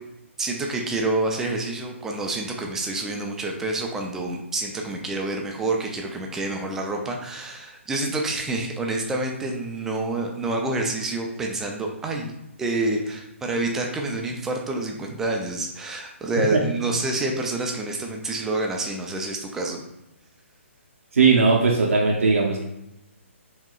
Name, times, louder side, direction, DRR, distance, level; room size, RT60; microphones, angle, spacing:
voice 1, 0.4-19.8, right 2 dB, 5° right, 1 dB, 0.3 m, -28 dB
voice 2, 21.1-22.7, right 4 dB, 80° right, -2 dB, 0.6 m, -18 dB
4.6 x 2.8 x 2.3 m, 0.91 s
hypercardioid pair, 155°, 7 cm